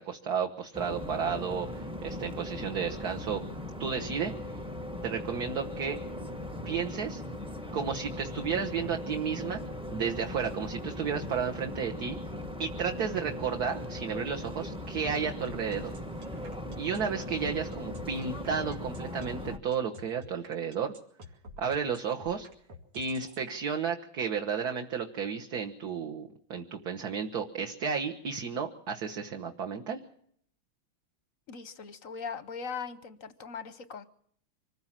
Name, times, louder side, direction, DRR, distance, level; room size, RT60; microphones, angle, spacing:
voice 1, 0.0-3.4 3.8-4.3 5.0-6.0 6.6-7.2 7.7-9.6 9.9-12.2 12.6-15.9 16.8-20.9 21.6-22.5 22.9-30.0, right 6 dB, 50° right, 3 dB, 1.4 m, -32 dB
sound 1, 0.7-19.6, left 1 dB, 5° right, 0.6 m, -39 dB
sound 2, 15.4-23.4, left 2 dB, 90° right, 3.4 m, -49 dB
voice 2, 31.5-34.1, left 5 dB, 50° left, 12 dB, 1.0 m, -40 dB
25.5 x 15.0 x 7.4 m, 0.66 s
omnidirectional pair, 2.4 m